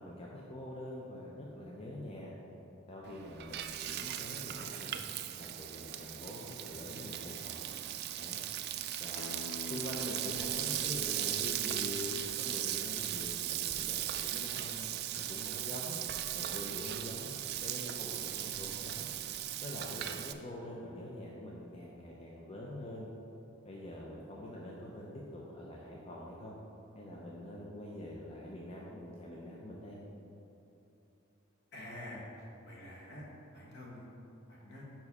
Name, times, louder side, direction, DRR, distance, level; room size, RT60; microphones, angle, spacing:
voice 1, 0.0-2.3 2.9-5.0 5.4-7.6 8.2-8.4 9.0-9.4 9.7-16.0 16.3-19.1 19.6-23.1 23.6-26.6 27.0-30.0, left 1 dB, 30° left, -4 dB, 0.6 m, -45 dB
Frying (food), 3.0-20.3, right 12 dB, 55° right, 0.3 m, -38 dB
Acoustic guitar, 9.2-14.4, left 3 dB, 75° left, 0.4 m, -50 dB
voice 2, 31.7-32.2 32.7-33.2 33.5-34.1 34.5-34.8, left 1 dB, 60° left, -4 dB, 1.5 m, -47 dB
5.3 x 4.9 x 5.4 m, 3.0 s
head